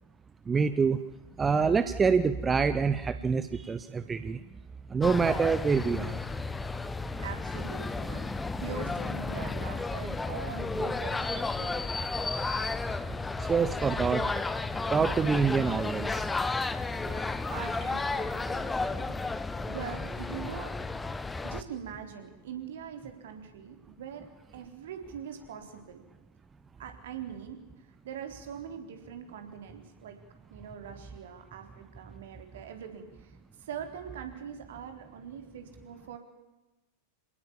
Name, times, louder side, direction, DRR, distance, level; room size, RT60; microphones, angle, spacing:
voice 1, 0.5-1.0 1.4-4.4 4.9-6.2 11.3-11.4 13.4-14.3 14.9-16.3, right 5 dB, 15° right, 12 dB, 0.9 m, -26 dB
sound 1, 5.0-21.6, left 3 dB, 10° left, 1.1 m, -33 dB
voice 2, 7.2-12.3 16.9-19.2 19.7-20.8 21.4-24.3 24.5-26.0 26.8-30.2 30.5-36.2, right 8 dB, 60° right, 5 dB, 3.9 m, -43 dB
27.5 x 18.5 x 7.3 m, 1.1 s
figure-of-eight pair, 90°, 0 cm